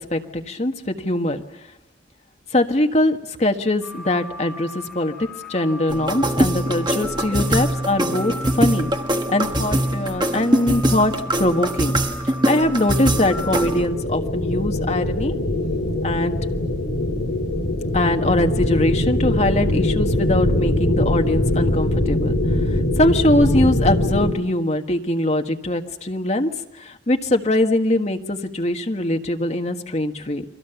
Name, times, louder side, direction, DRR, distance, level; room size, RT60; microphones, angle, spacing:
voice 1, 0.0-1.4 2.5-5.1 5.5-8.9 9.3-12.0 12.2-15.3 16.0-16.4 17.9-22.4 22.7-26.5 26.8-30.4, left 1 dB, 35° left, 4 dB, 1.5 m, -22 dB
sound 1, 3.8-13.8, equal, ahead, 1.8 m, -37 dB
sound 2, 5.9-13.9, right 1 dB, 25° right, 1.4 m, -23 dB
sound 3, 13.1-24.3, left 1 dB, 80° left, 3.6 m, -22 dB
30.0 x 23.0 x 7.0 m, 0.94 s
head